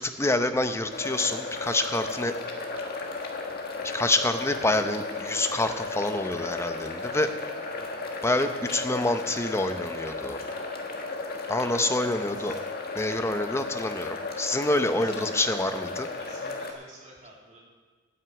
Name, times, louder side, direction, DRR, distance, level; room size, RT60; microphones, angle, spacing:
voice 1, 0.0-2.3 3.9-7.3 8.2-10.4 11.5-12.5 13.0-16.1, left 2 dB, 15° left, 8 dB, 0.7 m, -27 dB
sound 1, 0.9-16.7, left 3 dB, 50° left, 1.7 m, -35 dB
voice 2, 7.6-7.9 11.6-12.6 14.7-15.3 16.2-17.6, right 1 dB, 35° right, -3 dB, 3.0 m, -51 dB
9.5 x 9.4 x 8.1 m, 1.5 s
head